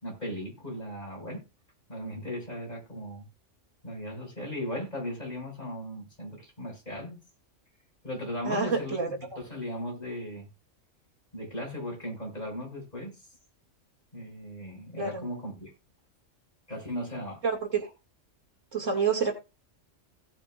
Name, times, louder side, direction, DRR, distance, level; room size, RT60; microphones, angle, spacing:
voice 1, 0.0-1.4 1.9-3.3 3.8-7.2 8.0-10.5 11.3-13.2 14.1-15.7 16.7-17.4, equal, 35° left, 6.0 m, -37 dB
voice 2, 8.4-9.4 15.0-15.3 17.4-17.9 18.7-19.3, right 5 dB, 85° right, 2.8 m, -28 dB
16.5 x 8.5 x 2.5 m
omnidirectional pair, 1.3 m